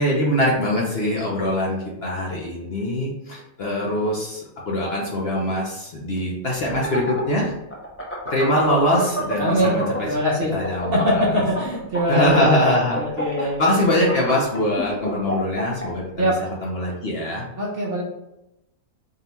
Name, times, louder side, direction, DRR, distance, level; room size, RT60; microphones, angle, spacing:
voice 1, 0.0-7.5 8.3-10.1 10.5-11.3 12.1-13.0 13.4-16.3 16.6-17.4, left 1 dB, 50° left, -3 dB, 0.9 m, -23 dB
sound 1, 6.6-10.2 10.5-15.9, right 1 dB, 20° left, 0.4 m, -28 dB
voice 2, 9.4-10.5 10.9-13.6 16.2-16.4 17.6-18.0, equal, 45° right, -4 dB, 1.0 m, -22 dB
3.8 x 2.3 x 4.1 m, 0.88 s
omnidirectional pair, 1.5 m